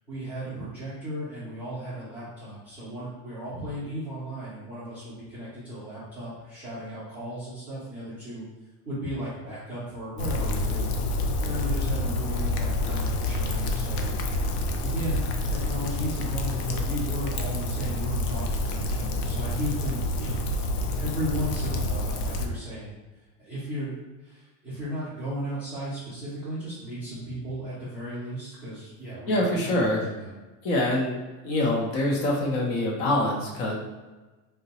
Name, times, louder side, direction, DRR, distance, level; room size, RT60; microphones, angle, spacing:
voice 1, 0.1-8.4 8.8-11.0 11.4-14.5 14.8-20.5 21.0-22.9 23.4-23.9 24.2-30.3, equal, 5° right, -13 dB, 0.4 m, -35 dB
Rain, 10.2-22.5, left 1 dB, 85° left, 0.6 m, -28 dB
voice 2, 29.3-30.0 30.6-31.2 31.4-33.8, left 1 dB, 55° left, -1 dB, 0.8 m, -25 dB
3.9 x 2.2 x 2.8 m, 1.2 s
cardioid pair, 180°, 44 cm